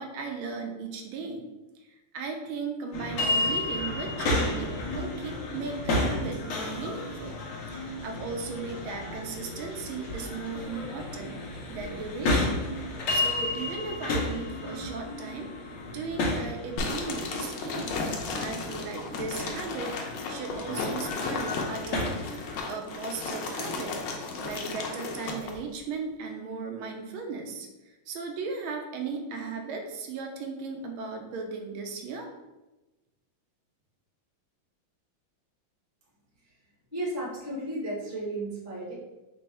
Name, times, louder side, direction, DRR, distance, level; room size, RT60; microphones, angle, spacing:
voice 1, 0.0-1.5 1.8-7.4 7.7-12.6 13.1-18.0 18.4-22.1 22.6-24.0 24.4-32.3, right 4 dB, 80° right, 3 dB, 1.4 m, -37 dB
sound 1, 2.9-22.6, left 2 dB, 65° left, 1.5 m, -32 dB
sound 2, 16.8-25.6, left 3 dB, 85° left, 1.5 m, -34 dB
voice 2, 36.9-38.9, right 1 dB, 15° right, -6 dB, 0.7 m, -33 dB
4.3 x 2.3 x 4.2 m, 1.1 s
omnidirectional pair, 2.3 m